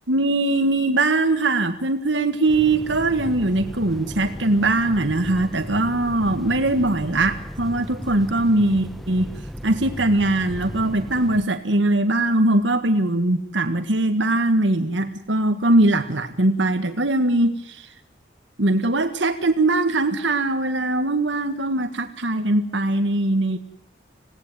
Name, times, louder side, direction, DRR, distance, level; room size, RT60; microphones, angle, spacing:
voice 1, 0.1-9.3 9.6-17.9 18.6-23.6, right 2 dB, 80° right, 8 dB, 1.6 m, -21 dB
sound 1, 2.5-11.4, equal, ahead, 0.9 m, -36 dB
27.0 x 18.0 x 9.1 m, 0.74 s
head